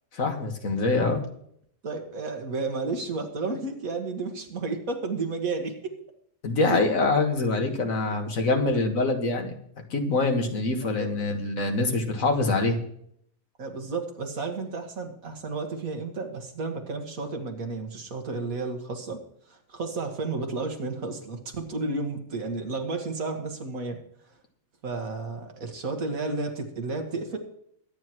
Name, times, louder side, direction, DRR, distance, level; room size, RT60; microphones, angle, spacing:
voice 1, 0.1-1.2 6.4-9.5 9.9-12.8, left 3 dB, 75° left, 4 dB, 2.0 m, -25 dB
voice 2, 1.8-6.0 6.7-6.8 10.8-11.5 13.6-19.2 19.5-24.3 24.8-27.4, right 3 dB, 85° right, 3 dB, 2.2 m, -32 dB
22.5 x 9.6 x 3.1 m, 0.69 s
omnidirectional pair, 1.4 m